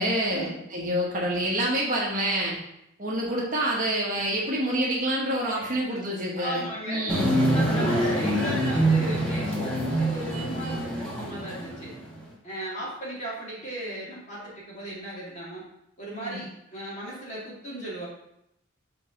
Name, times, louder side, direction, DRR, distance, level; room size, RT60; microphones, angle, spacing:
voice 1, 0.0-2.6 3.0-7.4 16.2-16.4, right 1 dB, 40° right, -4 dB, 1.4 m, -27 dB
voice 2, 5.5-6.0 6.3-7.3 7.5-11.9 12.4-15.6 16.0-18.1, equal, 35° left, -6 dB, 2.1 m, -36 dB
sound 1, 7.1-11.9 12.2-12.3, right 1 dB, 5° left, 1.3 m, -25 dB
6.5 x 4.1 x 3.8 m, 0.80 s
head